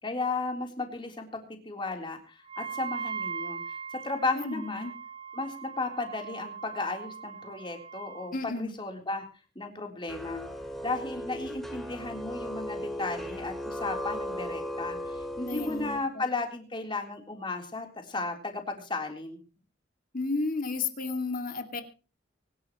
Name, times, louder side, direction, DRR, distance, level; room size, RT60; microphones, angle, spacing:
voice 1, 0.0-4.9 5.3-9.2 9.6-10.4 10.8-19.4, left 3 dB, 25° left, 4 dB, 3.7 m, -34 dB
Wind instrument woodwind instrument, 2.5-8.3, right 6 dB, 30° right, 3.3 m, -40 dB
voice 2, 4.3-4.9 8.3-8.7 15.5-16.2 20.1-21.8, left 3 dB, 45° left, 7 dB, 2.4 m, -32 dB
sound 1, 10.1-16.0, equal, ahead, 2.5 m, -37 dB
24.5 x 12.0 x 3.1 m, 0.35 s
head